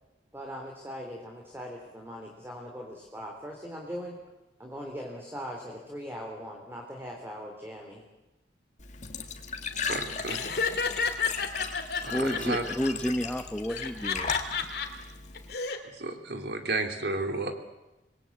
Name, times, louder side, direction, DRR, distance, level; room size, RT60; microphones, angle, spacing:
voice 1, 0.3-4.1 4.6-8.0, equal, 15° right, 1 dB, 3.5 m, -40 dB
Glass / Trickle dribble / Fill (with liquid), 8.8-15.5, left 5 dB, 45° left, 2.1 m, -37 dB
voice 2, 9.8-10.4 12.0-12.2 12.4-12.6 16.0-17.5, right 2 dB, 65° right, 6 dB, 2.9 m, -32 dB
Laughter, 10.3-12.9 13.7-14.9 15.3-15.8, left 5 dB, 60° left, 2.6 m, -31 dB
voice 3, 12.1-14.7, equal, 5° left, 6 dB, 1.0 m, -31 dB
26.5 x 21.0 x 8.6 m, 1.0 s
head